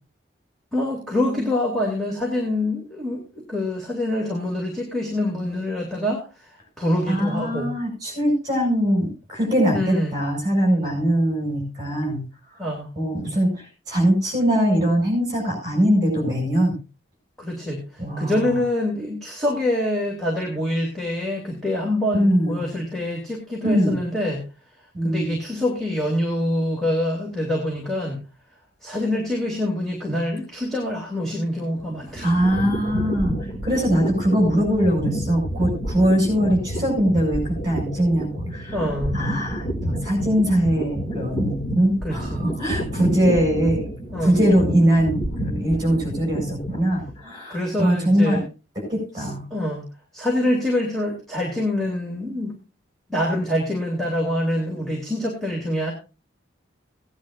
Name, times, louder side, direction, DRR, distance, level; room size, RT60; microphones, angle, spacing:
voice 1, 0.7-7.7 9.7-10.2 12.6-12.9 17.4-24.5 25.0-28.2 28.8-32.4 38.7-39.3 42.0-42.4 44.1-44.4 47.5-48.4 49.1-49.9 50.1-52.5 53.1-55.9, left 1 dB, ahead, -4 dB, 2.8 m, -25 dB
voice 2, 7.1-12.2 13.0-16.8 18.0-18.5 22.1-22.6 23.6-24.0 24.9-25.3 32.2-33.4 33.6-38.7 39.1-43.9 44.2-48.4 48.9-49.5, equal, 20° right, 0 dB, 7.0 m, -21 dB
sound 1, 31.7-47.2, right 1 dB, 40° left, 2.4 m, -29 dB
18.5 x 10.5 x 2.6 m, 0.31 s
head